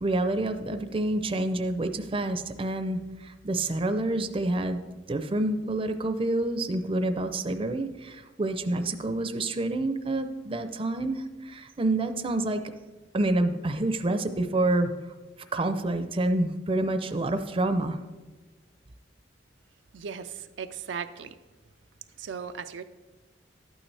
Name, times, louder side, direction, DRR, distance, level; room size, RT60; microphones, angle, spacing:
voice 1, 0.0-12.6 13.1-14.9 15.5-18.0, right 2 dB, 30° right, 8 dB, 0.5 m, -28 dB
voice 2, 19.9-21.4 22.2-22.8, right 6 dB, 80° right, 9 dB, 0.4 m, -37 dB
12.5 x 8.8 x 3.3 m, 1.3 s
head